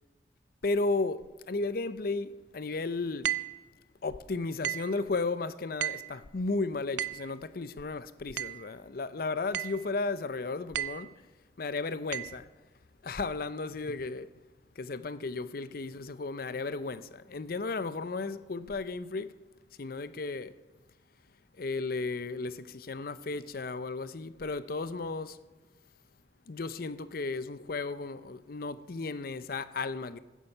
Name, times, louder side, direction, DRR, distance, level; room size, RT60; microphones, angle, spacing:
voice 1, 0.6-3.3 4.0-11.1 11.6-12.5 13.0-14.3 14.8-19.4 19.8-20.6 21.6-25.4 26.5-30.2, left 3 dB, 55° left, 0.6 m, -34 dB
sound 1, 3.2-3.6 4.6-5.0 5.8-6.2 7.0-7.3 8.4-8.7 9.5-9.9 10.7-11.1 12.1-12.4, right 12 dB, 85° right, 0.5 m, -34 dB
15.5 x 10.0 x 5.4 m
head